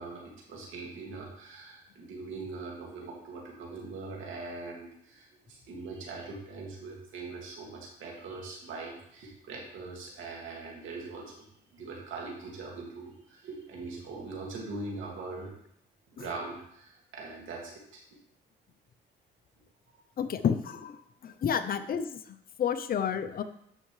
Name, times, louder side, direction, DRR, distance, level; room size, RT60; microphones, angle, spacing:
voice 1, 0.0-11.5 11.7-15.5 16.1-18.0 19.9-20.0, right 3 dB, 80° right, -2 dB, 2.3 m, -41 dB
voice 2, 20.2-21.0 21.2-22.2 22.6-23.4, left 8 dB, 50° left, 10 dB, 0.7 m, -30 dB
10.5 x 5.4 x 3.3 m, 0.73 s
cardioid pair, 90°, 20 cm